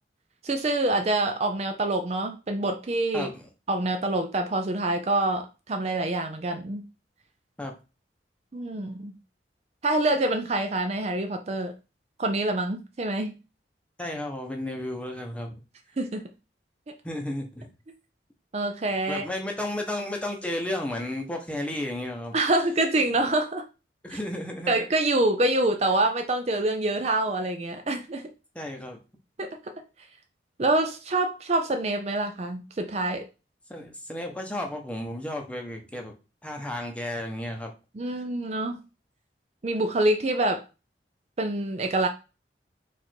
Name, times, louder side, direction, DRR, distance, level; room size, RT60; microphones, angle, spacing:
voice 1, 0.4-3.3 3.7-6.8 8.5-9.1 9.8-11.7 12.2-13.4 16.0-16.2 18.5-19.2 22.3-23.6 24.1-24.2 24.7-28.2 29.4-29.5 30.6-33.3 38.0-38.8 39.6-40.6 41.4-42.1, right 2 dB, 35° right, 5 dB, 0.5 m, -26 dB
voice 2, 3.1-3.5 7.6-7.8 14.0-15.6 17.0-17.7 19.1-22.3 24.0-24.7 28.5-29.0 33.7-36.1 36.4-37.7 38.1-38.2, left 1 dB, 5° left, 2 dB, 0.8 m, -33 dB
4.7 x 2.6 x 4.3 m, 0.30 s
head